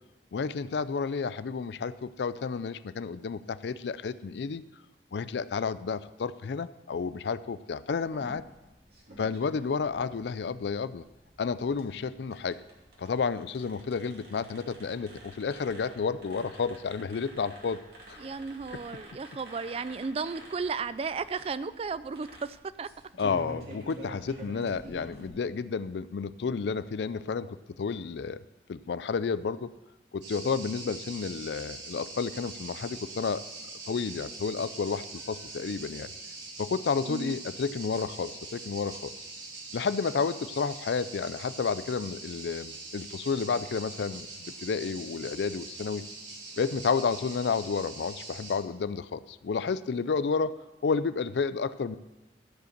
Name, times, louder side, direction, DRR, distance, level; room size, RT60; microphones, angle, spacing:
voice 1, 0.3-4.6 5.1-8.4 9.2-11.0 11.4-12.6 13.0-18.2 23.2-28.4 28.7-29.7 30.1-33.4 33.8-36.1 36.6-39.1 39.7-46.0 46.6-52.0, left 5 dB, 75° left, 15 dB, 0.4 m, -31 dB
sound 1, 8.0-25.3, right 1 dB, 60° right, 2.7 m, -49 dB
voice 2, 18.2-22.9 37.1-37.4, right 4 dB, 35° right, 15 dB, 0.3 m, -34 dB
sound 2, 30.2-48.6, right 3 dB, 85° right, 3.7 m, -43 dB
13.5 x 5.2 x 6.5 m, 1.0 s
head